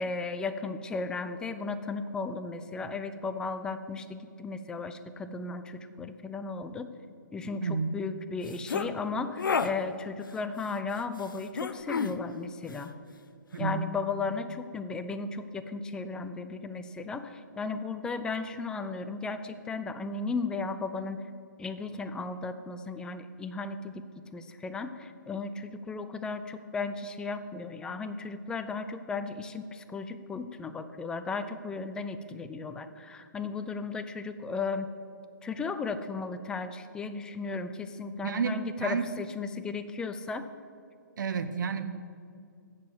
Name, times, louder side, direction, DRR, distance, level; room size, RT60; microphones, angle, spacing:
voice 1, 0.0-6.9 7.3-12.9 13.6-21.2 21.6-24.0 24.3-34.9 35.4-40.5, left 4 dB, 5° left, 10 dB, 0.3 m, -35 dB
voice 2, 7.6-8.0 13.5-13.9 38.2-39.1 41.2-41.8, right 5 dB, 70° right, 10 dB, 0.6 m, -30 dB
sound 1, 8.5-8.9 9.4-9.7 11.6-12.2, left 5 dB, 80° left, 0.6 m, -29 dB
7.4 x 6.5 x 7.7 m, 2.4 s
hypercardioid pair, 135°, 11 cm